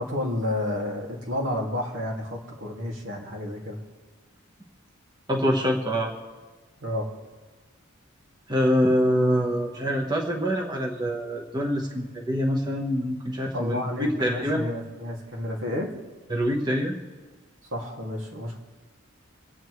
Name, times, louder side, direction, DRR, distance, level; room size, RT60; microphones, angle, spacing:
voice 1, 0.0-3.8 6.8-7.1 13.5-15.9 17.7-18.6, left 1 dB, 75° right, -1 dB, 2.3 m, -30 dB
voice 2, 5.3-6.1 8.5-14.6 16.3-17.0, equal, 20° right, 0 dB, 1.0 m, -25 dB
26.5 x 8.9 x 3.2 m, 1.3 s
head